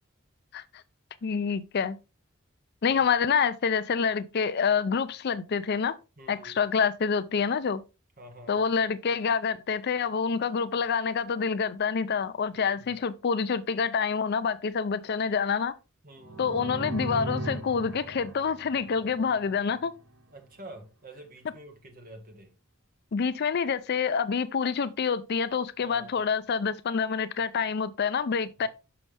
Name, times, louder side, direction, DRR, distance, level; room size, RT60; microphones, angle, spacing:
voice 1, 1.2-2.0 2.8-5.9 6.3-7.8 8.5-15.7 16.4-19.9 23.1-28.7, left 6 dB, 50° left, 0.4 m, -27 dB
voice 2, 6.2-6.6 8.2-8.6 12.5-12.9 16.0-16.5 20.3-22.5 25.8-26.1 28.6-28.7, right 1 dB, 45° right, 1.4 m, -48 dB
sound 1, 16.2-19.9, right 1 dB, 70° right, 1.1 m, -38 dB
6.3 x 5.7 x 3.3 m
head